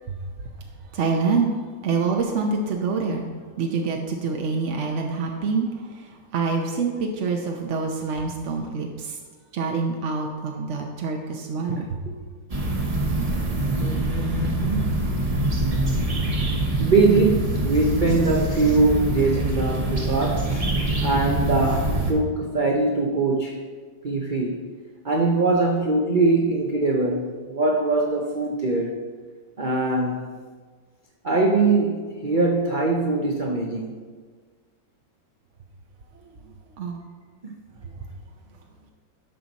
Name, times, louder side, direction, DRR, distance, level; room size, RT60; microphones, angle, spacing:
voice 1, 0.9-1.5 1.8-3.3 3.6-9.2 9.5-12.0 36.8-37.0 37.8-38.1, right 4 dB, 60° right, 1 dB, 0.8 m, -26 dB
sound 1, 12.5-22.1, right 1 dB, 30° right, 0.7 m, -25 dB
voice 2, 13.8-15.0 16.8-20.7 21.0-23.6 24.0-24.6 25.0-28.9 29.6-30.3 31.2-34.0 37.4-37.5, right 3 dB, 80° right, 0 dB, 0.4 m, -22 dB
11.5 x 6.1 x 4.0 m, 1.5 s
omnidirectional pair, 2.1 m